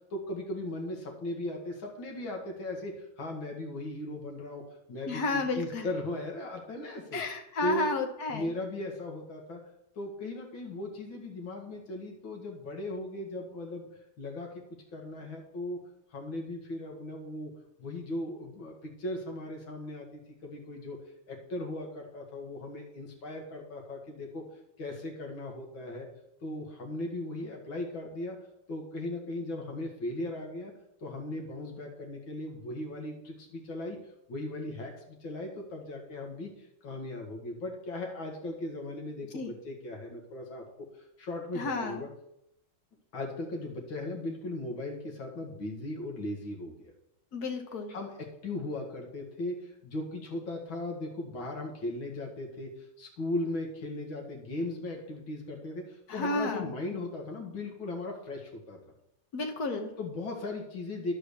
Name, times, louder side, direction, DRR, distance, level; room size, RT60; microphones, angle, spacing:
voice 1, 0.1-4.6 4.9-7.2 7.6-7.9 8.3-9.6 10.0-13.9 14.2-14.6 14.9-15.8 16.1-17.5 17.8-21.0 21.3-24.4 24.8-26.1 26.4-28.4 28.7-30.7 31.0-34.0 34.3-36.5 36.8-40.6 41.2-42.1 43.1-46.9 47.9-58.8 60.0-61.1, left 1 dB, 70° left, 1 dB, 2.7 m, -37 dB
voice 2, 5.1-5.8 7.1-8.5 39.3-39.5 41.5-42.0 47.3-47.9 56.1-56.7 59.3-59.9, left 3 dB, 50° left, 5 dB, 1.6 m, -32 dB
11.0 x 5.0 x 6.9 m, 0.79 s
omnidirectional pair, 2.3 m